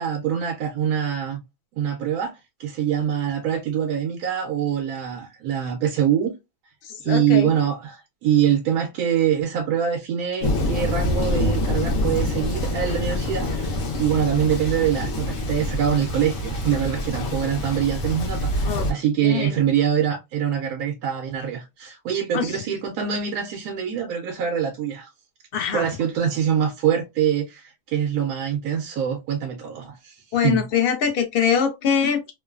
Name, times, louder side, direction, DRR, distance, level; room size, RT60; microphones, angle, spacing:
voice 1, 0.0-1.4 1.8-6.3 7.0-25.1 25.7-30.7, right 9 dB, 90° right, 1.1 m, -24 dB
voice 2, 6.8-7.5 18.6-18.9 19.2-19.6 22.3-22.5 25.5-25.9 30.3-32.2, left 7 dB, 55° left, 0.7 m, -23 dB
Thunder, 10.4-18.9, left 1 dB, 70° left, 1.2 m, -26 dB
3.1 x 2.1 x 2.2 m
omnidirectional pair, 1.5 m